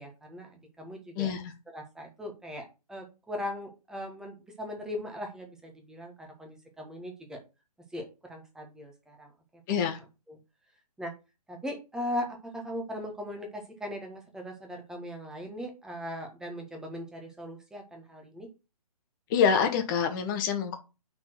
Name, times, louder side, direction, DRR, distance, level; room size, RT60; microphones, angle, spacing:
voice 1, 0.0-1.3 1.7-7.4 7.9-9.3 9.9-10.0 10.3-10.4 11.0-11.1 11.5-18.5, left 1 dB, 5° right, 1.4 m, -39 dB
voice 2, 9.7-10.0 19.3-20.8, left 7 dB, 30° left, 1.5 m, -26 dB
5.8 x 4.3 x 6.1 m
figure-of-eight pair, 135°, 20 cm